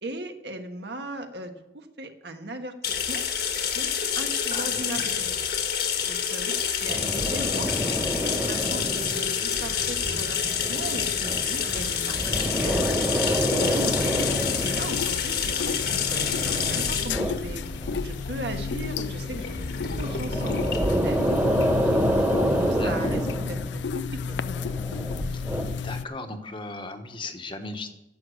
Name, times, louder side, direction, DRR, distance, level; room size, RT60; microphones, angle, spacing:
voice 1, 0.0-3.2 3.7-5.4 6.0-6.6 6.8-7.7 8.2-14.1 14.6-17.6 18.0-19.7 20.0-22.0 22.5-24.4, right 1 dB, 75° right, 5 dB, 1.5 m, -38 dB
sound 1, 2.8-22.3, left 7 dB, 60° left, 1.6 m, -28 dB
voice 2, 4.5-5.2 22.8-23.2 25.3-25.4 25.8-27.9, left 2 dB, 30° left, 6 dB, 1.2 m, -37 dB
sound 2, 6.9-18.4 18.7-25.9, equal, 10° right, 1.4 m, -28 dB
sound 3, 13.5-26.0, left 5 dB, 90° left, 0.4 m, -33 dB
11.5 x 7.4 x 9.7 m, 0.94 s
head